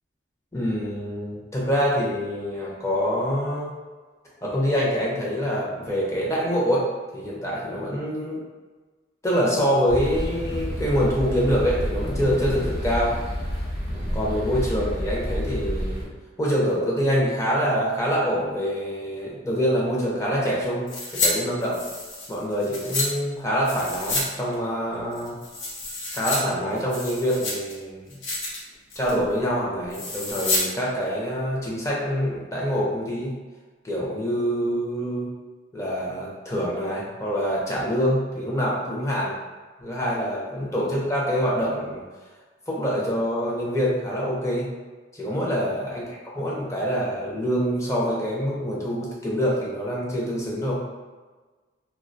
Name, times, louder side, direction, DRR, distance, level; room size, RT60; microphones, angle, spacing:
voice 1, 0.5-3.8 4.4-6.8 7.1-8.4 9.2-13.1 14.1-16.1 16.4-21.8 22.3-25.4 26.1-28.2 29.0-33.4 33.8-35.3 35.7-39.3 39.8-42.0 42.7-44.7 45.2-50.8, equal, 15° left, -5 dB, 0.5 m, -25 dB
sound 1, 9.9-16.0, equal, 60° left, 1.0 m, -29 dB
sound 2, 20.9-21.3 21.6-23.1 23.6-24.3 24.5-24.6 25.1-26.4 26.8-27.7 28.1-28.6 28.9-29.2 29.9-30.6 30.9-31.0, left 2 dB, 75° left, 0.7 m, -28 dB
2.3 x 2.2 x 2.5 m, 1.3 s
head